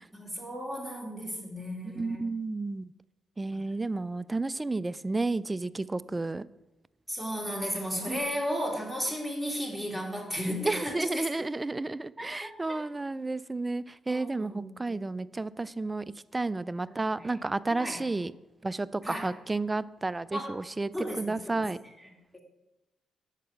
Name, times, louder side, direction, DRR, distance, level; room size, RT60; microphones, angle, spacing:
voice 1, 0.1-2.2 3.5-3.6 7.1-11.3 12.2-12.8 14.1-15.1 16.9-17.3 17.7-18.0 19.0-19.3 20.3-20.5 20.9-21.6 22.3-22.4, equal, 5° left, -1 dB, 2.7 m, -35 dB
voice 2, 1.9-2.9 3.4-6.5 8.1-8.2 10.7-16.1 16.3-18.3 18.6-21.8, right 3 dB, 25° right, 18 dB, 0.3 m, -32 dB
6.6 x 5.5 x 6.3 m, 1.0 s
hypercardioid pair, 50°, 0 cm